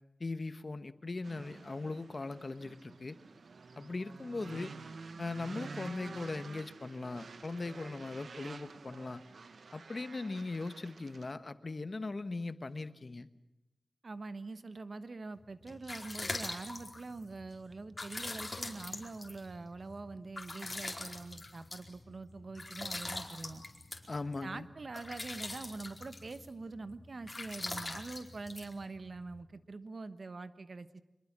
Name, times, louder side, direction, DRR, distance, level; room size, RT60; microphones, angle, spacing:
voice 1, 0.2-3.2 3.8-4.7 5.2-9.2 9.7-13.3 24.1-24.7, left 3 dB, 50° left, 12 dB, 1.2 m, -39 dB
sound 1, 1.2-11.3, right 4 dB, 80° right, 1.0 m, -49 dB
voice 2, 14.0-23.6 24.4-31.0, right 3 dB, 60° right, 12 dB, 1.3 m, -44 dB
sound 2, 15.4-29.4, left 2 dB, 30° left, 4.5 m, -43 dB
25.0 x 22.0 x 7.5 m, 0.96 s
wide cardioid pair, 70°, 0 cm